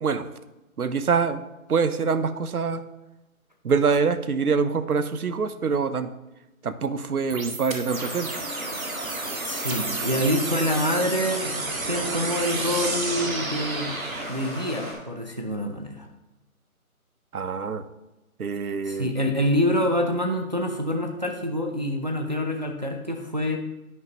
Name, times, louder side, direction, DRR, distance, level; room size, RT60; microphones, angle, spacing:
voice 1, 0.8-2.8 3.6-6.1 6.6-8.3 17.3-17.8 18.4-19.1, right 5 dB, 85° right, 12 dB, 0.9 m, -25 dB
sound 1, 7.3-14.3, right 3 dB, 70° right, 2.0 m, -31 dB
Stream, 7.9-14.9, equal, 10° right, 1.4 m, -36 dB
voice 2, 9.4-13.9 14.3-16.1 18.8-23.6, equal, 30° right, 3 dB, 0.6 m, -26 dB
11.0 x 9.5 x 3.0 m, 0.99 s
hypercardioid pair, 175°, 43 cm